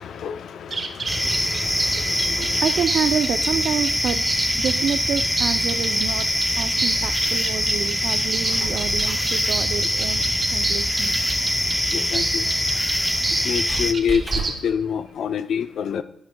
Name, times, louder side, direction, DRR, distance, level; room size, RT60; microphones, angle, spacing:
voice 1, 0.0-2.6 11.9-12.4 13.4-16.0, left 7 dB, 70° left, 0.5 m, -27 dB
sound 1, 0.7-14.5, right 3 dB, 35° right, 1.0 m, -30 dB
sound 2, 1.1-13.9, equal, 5° left, 0.5 m, -23 dB
voice 2, 2.6-4.3 4.6-6.3 6.6-10.2 10.5-11.1, right 7 dB, 65° right, 0.5 m, -28 dB
Squeak, 8.3-14.8, right 3 dB, 20° right, 3.6 m, -36 dB
11.5 x 9.5 x 2.2 m
cardioid pair, 105°, 0 cm